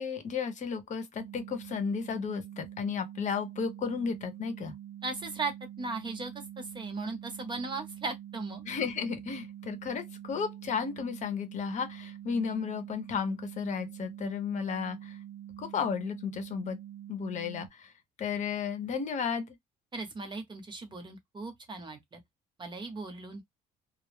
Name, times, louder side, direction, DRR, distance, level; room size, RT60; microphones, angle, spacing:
voice 1, 0.0-4.7 8.7-15.2 15.6-16.8 17.1-17.9 18.2-19.5, left 6 dB, 45° left, 0.8 m, -33 dB
sound 1, 1.2-17.7, right 11 dB, 70° right, 0.5 m, -46 dB
voice 2, 5.0-8.6 19.9-22.2 22.6-23.4, right 3 dB, 25° right, 0.8 m, -37 dB
2.2 x 2.0 x 3.1 m
cardioid pair, 110°, 17 cm